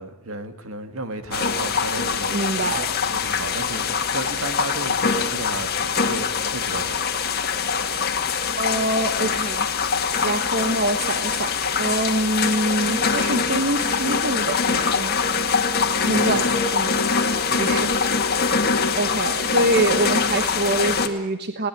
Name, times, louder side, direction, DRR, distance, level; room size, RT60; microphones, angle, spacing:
voice 1, 0.0-7.1 16.2-16.5 17.5-17.8, right 2 dB, 75° right, 7 dB, 2.3 m, -34 dB
sound 1, 1.3-21.1, left 5 dB, 45° left, 2.0 m, -23 dB
voice 2, 2.3-2.9 8.6-9.7 10.2-15.2 16.0-16.5 16.7-17.0 17.6-17.9 18.9-21.7, right 1 dB, 50° right, 8 dB, 1.2 m, -25 dB
20.5 x 18.0 x 9.9 m, 0.79 s
head